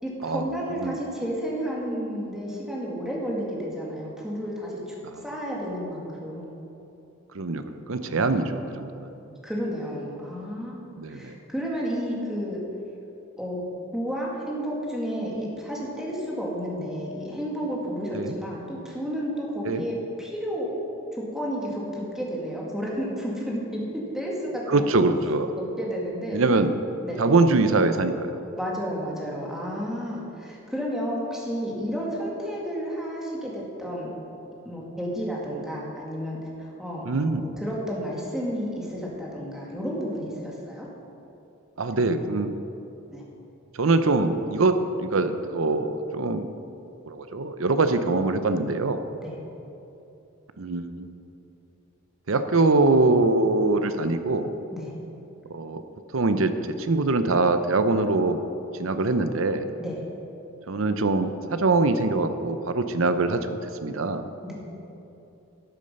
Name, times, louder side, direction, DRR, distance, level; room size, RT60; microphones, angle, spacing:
voice 1, 0.0-4.8 5.2-6.5 8.0-8.6 9.3-10.7 11.1-12.6 13.4-13.6 13.9-20.7 21.1-23.8 24.1-24.9 25.6-26.4 27.0-27.2 28.6-34.1 34.6-36.4 36.8-40.9 41.9-42.1 43.1-43.2 49.2-49.4 54.7-54.9 59.8-60.0 64.4-64.5, equal, 5° right, -4 dB, 2.0 m, -31 dB
voice 2, 7.3-9.1 11.0-11.3 18.1-18.4 19.6-19.8 24.7-25.5 26.3-26.7 27.2-28.4 37.1-37.5 41.8-42.5 43.8-46.5 47.1-49.0 50.6-51.1 52.3-54.5 55.5-55.8 56.1-56.5 56.8-58.4 58.8-59.6 60.7-63.5 63.8-64.2, right 3 dB, 70° right, 10 dB, 0.7 m, -23 dB
12.5 x 8.4 x 5.4 m, 2.9 s
head